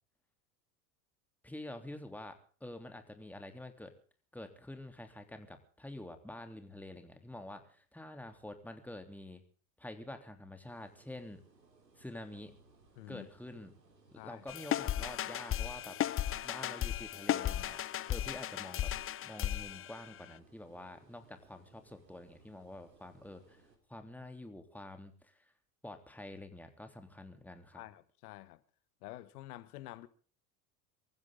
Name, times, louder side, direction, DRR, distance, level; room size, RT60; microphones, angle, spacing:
voice 1, 1.4-3.9 4.3-9.4 9.8-11.4 12.0-12.5 13.1-13.7 14.1-16.0 16.4-18.9 19.2-23.6 23.9-25.5 25.8-27.8, left 1 dB, 5° left, 3.3 m, -48 dB
sound 1, 10.7-23.8, right 3 dB, 90° right, 3.8 m, -65 dB
voice 2, 13.0-13.3 14.2-14.4 27.7-28.6 29.0-30.1, left 16 dB, 65° left, 1.4 m, -49 dB
sound 2, 14.5-20.3, left 12 dB, 25° left, 0.8 m, -35 dB
25.0 x 14.5 x 3.8 m
hypercardioid pair, 80°, 49 cm